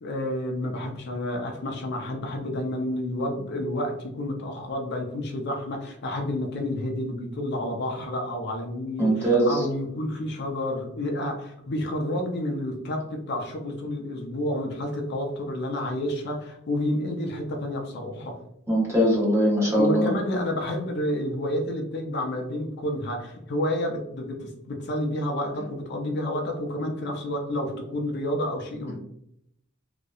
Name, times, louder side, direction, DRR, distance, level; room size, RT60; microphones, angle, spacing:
voice 1, 0.0-18.4 19.8-29.0, left 1 dB, 55° left, 2 dB, 0.5 m, -30 dB
voice 2, 9.0-9.5 18.7-20.1, right 1 dB, 15° right, -4 dB, 0.7 m, -21 dB
2.7 x 2.1 x 2.3 m, 0.75 s
head